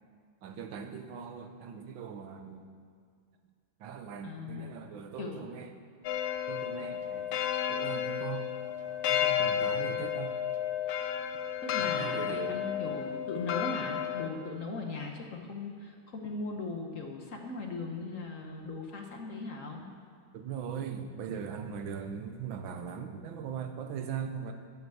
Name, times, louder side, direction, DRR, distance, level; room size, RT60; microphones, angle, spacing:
voice 1, 0.4-2.7 3.8-5.7 6.5-7.4 7.7-8.5 9.1-10.4 11.8-12.6 20.3-24.5, right 7 dB, 80° right, 6 dB, 1.6 m, -40 dB
voice 2, 4.2-4.7 5.2-5.4 11.6-19.8, left 3 dB, 50° left, 2 dB, 1.2 m, -39 dB
sound 1, 6.0-14.3, left 10 dB, 75° left, 1.4 m, -32 dB
10.5 x 8.0 x 7.7 m, 2.2 s
omnidirectional pair, 2.2 m